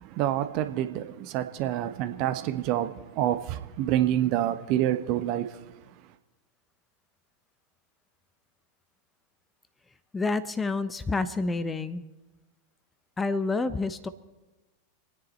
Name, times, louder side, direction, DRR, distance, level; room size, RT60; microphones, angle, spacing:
voice 1, 0.0-5.6, right 12 dB, 45° right, 0.9 m, -27 dB
voice 2, 10.1-12.0 13.2-14.1, left 3 dB, 15° left, 0.7 m, -28 dB
27.0 x 9.7 x 4.4 m
figure-of-eight pair, 90°, 0 cm